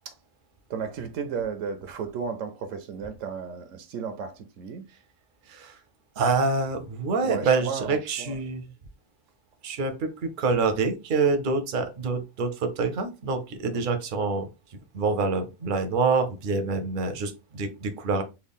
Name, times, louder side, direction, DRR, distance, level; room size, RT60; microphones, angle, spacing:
voice 1, 0.7-4.8 7.2-8.4, right 6 dB, 80° right, 0.9 m, -34 dB
voice 2, 5.5-5.8 6.2-8.7 9.6-14.5 14.9-18.2, right 4 dB, 55° right, 0.6 m, -26 dB
3.6 x 2.2 x 3.5 m
omnidirectional pair, 1.3 m